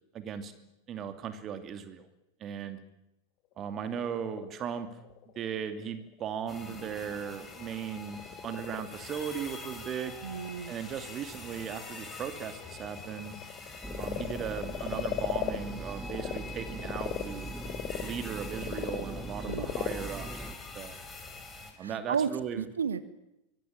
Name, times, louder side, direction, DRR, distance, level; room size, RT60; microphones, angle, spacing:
voice 1, 0.1-0.5 0.9-2.1 2.4-2.8 3.6-4.9 5.4-10.2 10.7-13.3 14.0-17.6 18.0-20.5 20.7-21.0 21.8-22.6, right 8 dB, 30° right, 9 dB, 2.7 m, -37 dB
Frog, 3.5-16.4 16.8-21.4, left 14 dB, 40° left, 1.9 m, -40 dB
sound 1, 6.5-21.7, left 3 dB, 15° left, 5.8 m, -45 dB
voice 2, 10.2-10.7 19.5-19.7 21.8-22.3 22.6-23.0, right 6 dB, 70° right, 13 dB, 1.7 m, -32 dB
sound 2, 13.8-20.5, right 2 dB, ahead, 2.4 m, -41 dB
25.0 x 22.0 x 8.9 m, 0.89 s
figure-of-eight pair, 90°, 0 cm